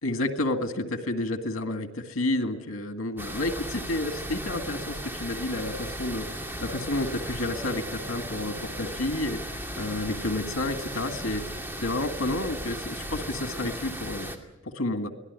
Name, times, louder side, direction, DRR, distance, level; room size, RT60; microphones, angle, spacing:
voice 1, 0.0-9.4 9.8-11.4 11.8-14.3 14.6-15.1, left 2 dB, 80° left, 7 dB, 2.0 m, -30 dB
sound 1, 3.2-14.4, equal, 10° right, 2.4 m, -36 dB
24.5 x 17.5 x 9.6 m, 0.92 s
head